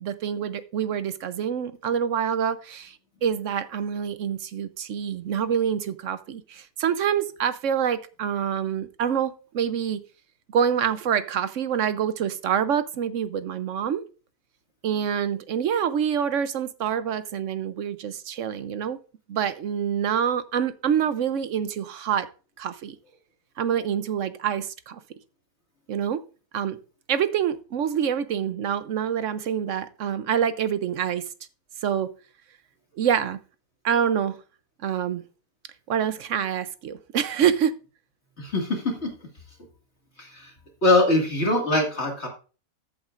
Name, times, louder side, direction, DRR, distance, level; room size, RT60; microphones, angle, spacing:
voice 1, 0.0-10.0 10.5-14.0 14.8-19.0 19.3-22.3 22.6-23.0 23.6-25.0 25.9-26.2 26.5-26.8 27.1-31.2 31.8-32.1 33.0-33.4 33.8-34.4 34.8-35.2 35.9-37.7, right 8 dB, 65° right, 13 dB, 0.8 m, -26 dB
voice 2, 38.4-39.1 40.2-40.5 40.8-42.3, left 2 dB, 40° left, 1 dB, 2.2 m, -22 dB
14.0 x 8.0 x 2.4 m, 0.35 s
omnidirectional pair, 1.8 m